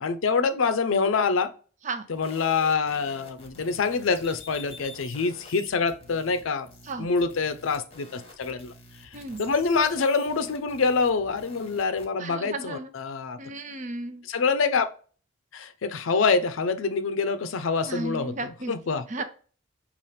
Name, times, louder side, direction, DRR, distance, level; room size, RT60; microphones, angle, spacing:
voice 1, 0.0-1.5 2.1-6.7 7.0-8.7 9.4-13.4 14.3-14.9 15.5-18.3 18.7-19.0, left 4 dB, 85° left, 11 dB, 0.5 m, -25 dB
sound 1, 2.1-12.1, left 3 dB, 30° left, 1.0 m, -48 dB
voice 2, 9.1-9.4 12.2-12.9 13.4-14.3 17.9-18.7 19.1-19.2, right 2 dB, 40° right, 9 dB, 0.6 m, -34 dB
5.5 x 2.4 x 3.2 m, 0.40 s
head